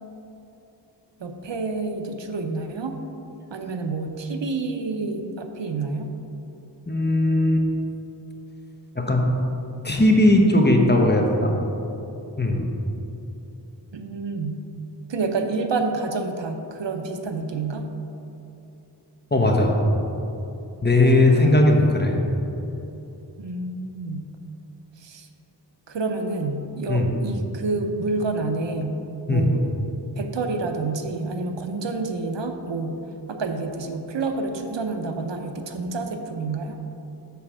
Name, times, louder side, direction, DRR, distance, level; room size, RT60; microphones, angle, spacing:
voice 1, 1.2-2.9 3.5-6.1 13.9-14.6 15.1-17.9 21.1-21.9 23.4-24.3 25.0-25.3 25.9-29.0 29.3-29.7 30.2-33.0 33.3-36.7, right 3 dB, 85° right, 5 dB, 0.6 m, -28 dB
voice 2, 6.9-7.7 8.9-9.3 9.8-11.5 12.4-12.6 19.3-19.8 20.8-22.2 26.9-27.1 29.3-29.5, left 1 dB, 25° left, 1 dB, 0.9 m, -18 dB
6.9 x 4.3 x 6.1 m, 2.9 s
wide cardioid pair, 50°, 43 cm